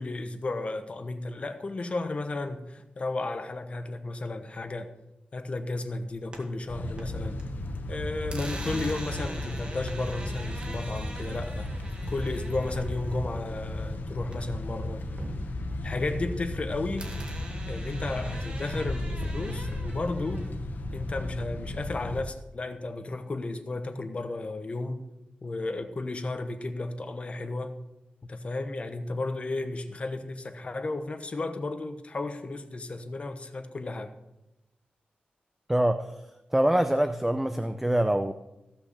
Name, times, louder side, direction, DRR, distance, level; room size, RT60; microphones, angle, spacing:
voice 1, 0.0-4.9 5.3-7.4 7.9-11.7 12.1-15.0 15.8-17.1 17.7-20.5 20.9-25.0 25.4-27.8 28.2-34.1, left 2 dB, 40° left, 8 dB, 1.1 m, -33 dB
sound 1, 6.0-7.4 7.7-14.7 15.0-16.6 17.0-20.5, right 2 dB, 30° right, 1.9 m, -43 dB
sound 2, 6.7-22.2, left 1 dB, 80° left, 1.2 m, -34 dB
voice 2, 35.7-36.2 36.5-38.3, right 1 dB, 5° right, 9 dB, 0.5 m, -24 dB
15.0 x 5.9 x 6.7 m, 0.94 s
wide cardioid pair, 125°, 3 cm